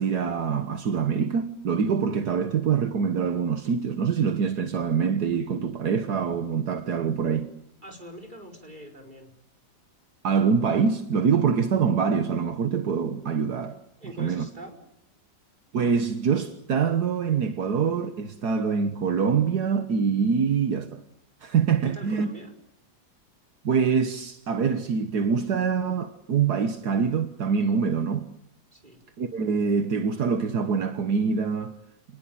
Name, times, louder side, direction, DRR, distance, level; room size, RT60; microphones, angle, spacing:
voice 1, 0.0-7.5 10.2-13.8 14.2-14.5 15.7-21.0 21.4-22.3 23.6-28.3 29.2-31.7, right 6 dB, 70° right, 1.8 m, -25 dB
voice 2, 7.8-9.3 14.0-14.8 21.8-22.5 28.7-29.0, equal, 30° right, 5.0 m, -43 dB
29.0 x 20.0 x 8.8 m
omnidirectional pair, 1.7 m